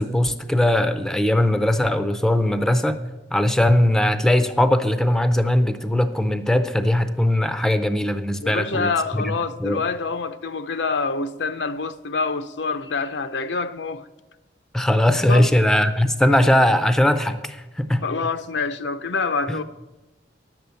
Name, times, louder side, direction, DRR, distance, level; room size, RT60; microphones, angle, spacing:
voice 1, 0.0-3.0 3.3-9.3 9.6-9.8 14.7-18.0 19.5-19.6, left 1 dB, 5° left, 0.5 m, -20 dB
voice 2, 8.4-14.1 15.3-15.5 18.0-19.6, left 4 dB, 70° left, 0.6 m, -26 dB
11.0 x 7.9 x 6.9 m
head